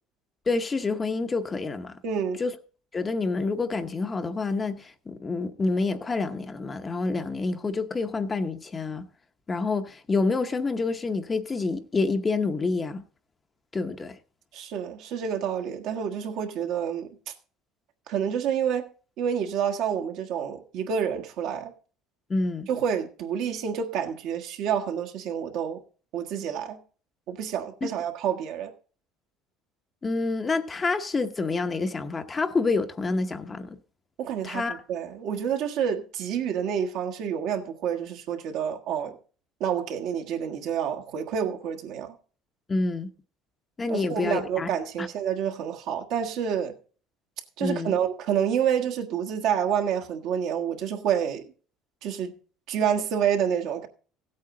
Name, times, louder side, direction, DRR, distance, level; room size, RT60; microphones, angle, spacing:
voice 1, 0.5-2.0 2.4-2.6 2.9-9.1 9.5-13.0 13.7-14.2 22.3-22.7 27.8-27.9 30.0-33.8 34.4-34.8 42.7-43.1 43.8-44.7 45.0-45.1 47.6-47.9, left 3 dB, 20° left, 0.8 m, -28 dB
voice 2, 2.0-2.4 14.5-17.1 18.1-18.9 19.2-21.7 22.7-25.8 26.1-26.8 27.3-28.7 34.2-39.2 39.6-42.1 43.9-46.7 47.6-51.4 52.0-52.3 52.7-53.9, right 8 dB, 65° right, 1.5 m, -28 dB
15.5 x 8.6 x 3.8 m
cardioid pair, 130°, 0 cm